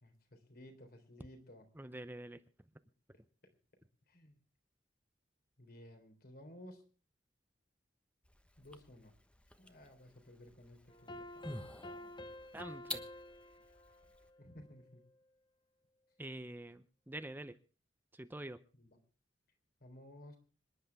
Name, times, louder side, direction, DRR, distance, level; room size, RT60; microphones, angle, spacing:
voice 1, 0.0-1.7 4.1-4.4 5.6-6.8 8.6-9.1 9.6-11.6 14.4-15.0 18.7-19.0 19.8-20.4, left 1 dB, 55° left, 5 dB, 3.6 m, -56 dB
voice 2, 1.8-2.4 12.5-13.0 16.2-17.6 18.1-18.6, right 1 dB, 10° right, 11 dB, 0.7 m, -46 dB
sound 1, 8.2-14.3, left 1 dB, 5° left, 1.1 m, -50 dB
sound 2, 10.9-15.1, left 1 dB, 25° left, 0.9 m, -51 dB
26.5 x 10.5 x 3.5 m, 0.39 s
head